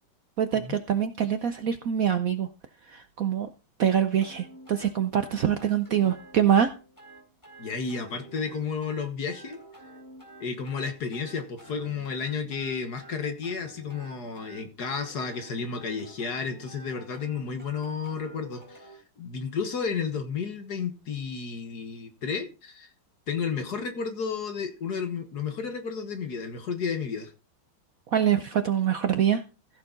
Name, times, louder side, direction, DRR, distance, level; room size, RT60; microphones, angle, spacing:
voice 1, 0.4-2.5 2.9-3.5 3.8-6.7 28.1-29.4, right 9 dB, 65° right, 0.9 m, -24 dB
sound 1, 4.2-19.0, right 2 dB, 10° left, 3.4 m, -49 dB
voice 2, 7.6-9.6 10.4-22.9 23.3-27.3, left 5 dB, 55° left, 1.8 m, -32 dB
15.5 x 6.7 x 3.9 m
omnidirectional pair, 2.2 m